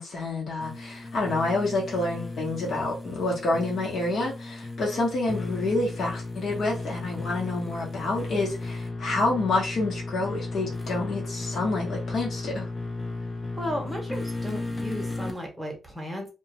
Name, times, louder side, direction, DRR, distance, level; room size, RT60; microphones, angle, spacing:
voice 1, 0.0-12.7, left 2 dB, 55° left, 1.0 m, -28 dB
sound 1, 0.6-15.4, left 2 dB, 20° left, 0.5 m, -35 dB
voice 2, 13.6-16.3, left 1 dB, 5° right, 1.0 m, -34 dB
2.2 x 2.2 x 2.8 m
cardioid pair, 110°, 0 cm